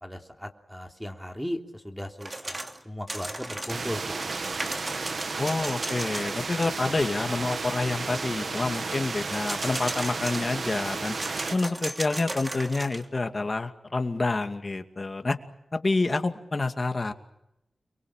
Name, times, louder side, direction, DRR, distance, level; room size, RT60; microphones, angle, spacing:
voice 1, 0.0-2.6 2.8-4.3, equal, ahead, 2 dB, 3.4 m, -37 dB
sound 1, 2.2-2.8 3.1-6.4 6.6-6.7 9.3-10.7 11.2-13.1, right 1 dB, 30° right, 3.0 m, -36 dB
sound 2, 3.7-11.6, right 4 dB, 70° right, 1.9 m, -33 dB
voice 2, 5.4-11.2 11.5-15.4 15.7-17.1, left 3 dB, 40° left, 7 dB, 2.3 m, -28 dB
30.0 x 23.0 x 7.4 m, 0.86 s
wide cardioid pair, 70°, 0 cm